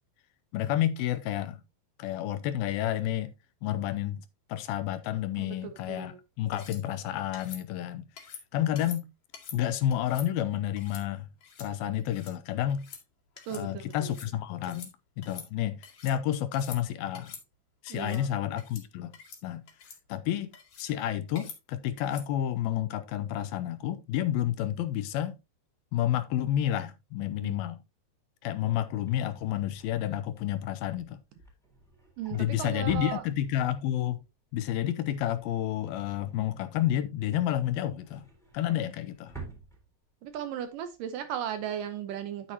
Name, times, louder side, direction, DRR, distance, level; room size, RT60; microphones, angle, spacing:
voice 1, 0.5-1.6 2.0-3.3 3.6-4.2 4.5-8.0 8.5-9.1 9.5-11.3 11.6-12.9 13.5-14.9 15.2-17.3 17.8-19.1 19.4-19.6 20.1-20.5 20.8-25.4 25.9-27.8 28.4-31.2 32.3-34.2 34.5-38.3 38.5-39.3, left 12 dB, 80° left, 2.4 m, -30 dB
voice 2, 5.4-6.2 13.5-14.1 17.9-18.3 27.4-27.6 32.2-33.2 38.7-38.9 40.2-42.5, right 10 dB, 75° right, 2.1 m, -36 dB
sound 1, 6.5-6.8 7.3-7.6 8.2-8.4 8.8-9.0 9.3-9.6 9.9-10.3 10.8-11.0 11.4-11.7 12.0-12.3 12.7-13.0 13.4-13.6 13.9-14.3 14.6-14.9 15.2-16.2 16.5-16.8 17.1-17.4 17.9-18.2 18.6-18.8 19.1-19.4 19.7-20.0 20.5-20.9 21.4-21.6 22.0-22.3, left 7 dB, 50° left, 3.1 m, -46 dB
Drawer open or close, 29.0-33.8 34.2-34.5 34.8-37.0 37.4-40.4 40.8-41.0 41.2-41.3, right 4 dB, ahead, 3.2 m, -49 dB
10.0 x 9.0 x 2.8 m
omnidirectional pair, 4.6 m